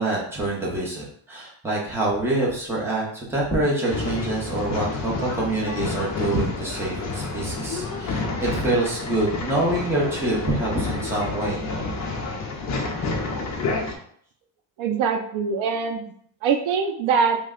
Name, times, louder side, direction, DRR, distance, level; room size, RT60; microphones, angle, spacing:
voice 1, 0.0-11.6, right 2 dB, 5° right, -5 dB, 0.6 m, -26 dB
Male speech man speaking / Chatter / Rattle, 3.9-14.0, left 3 dB, 40° left, 0.4 m, -29 dB
voice 2, 14.8-16.0 16.4-17.4, right 6 dB, 75° right, 6 dB, 0.5 m, -23 dB
3.1 x 2.2 x 3.6 m, 0.63 s
cardioid pair, 175°, 48 cm